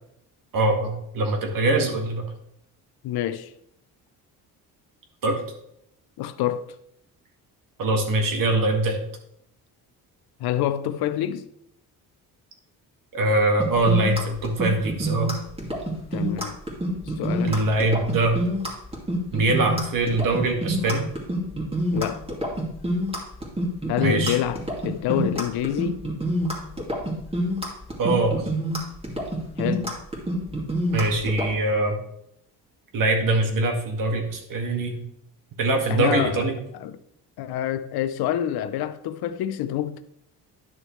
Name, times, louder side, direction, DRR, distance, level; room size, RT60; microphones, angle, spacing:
voice 1, 0.5-2.2 5.2-5.4 7.8-9.0 13.1-15.3 17.4-18.4 19.3-21.1 24.0-24.4 28.0-28.5 30.9-32.0 32.9-35.0 35.6-36.5, right 2 dB, 60° right, 2.0 m, -23 dB
voice 2, 3.0-3.5 6.2-6.8 10.4-11.5 16.1-16.6 17.1-17.6 21.9-22.2 23.9-26.0 29.6-29.9 35.9-36.4 36.8-37.0 37.4-40.0, left 11 dB, 75° left, 0.7 m, -27 dB
sound 1, 13.6-31.5, right 1 dB, 15° right, 2.4 m, -27 dB
10.5 x 6.3 x 3.2 m
cardioid pair, 110°, 38 cm